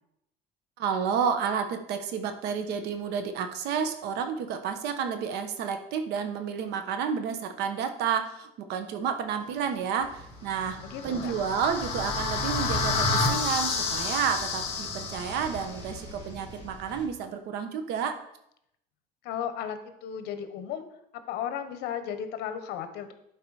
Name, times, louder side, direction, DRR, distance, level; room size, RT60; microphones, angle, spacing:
voice 1, 0.8-10.8 11.0-18.2, right 7 dB, 75° right, 8 dB, 1.2 m, -30 dB
sound 1, 10.0-17.1, equal, 25° right, 1.8 m, -45 dB
sound 2, 10.7-15.7, left 3 dB, 35° left, 2.2 m, -29 dB
voice 2, 10.8-11.3 19.2-20.9 21.1-23.1, left 9 dB, 75° left, 9 dB, 1.1 m, -35 dB
11.5 x 4.7 x 4.9 m, 0.78 s
cardioid pair, 145°, 17 cm